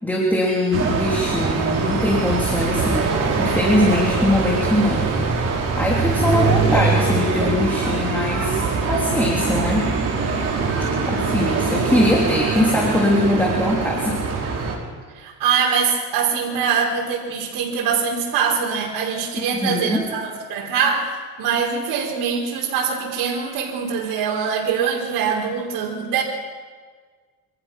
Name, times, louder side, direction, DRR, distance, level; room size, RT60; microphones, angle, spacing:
voice 1, 0.0-5.1 5.8-9.9 11.1-14.2 19.4-20.0, left 1 dB, 5° left, -3 dB, 3.3 m, -21 dB
sound 1, 0.7-14.8, right 4 dB, 40° right, 5.7 m, -22 dB
voice 2, 15.1-26.2, right 6 dB, 90° right, -4 dB, 5.2 m, -23 dB
29.0 x 26.0 x 6.0 m, 1.5 s
cardioid pair, 170°, 37 cm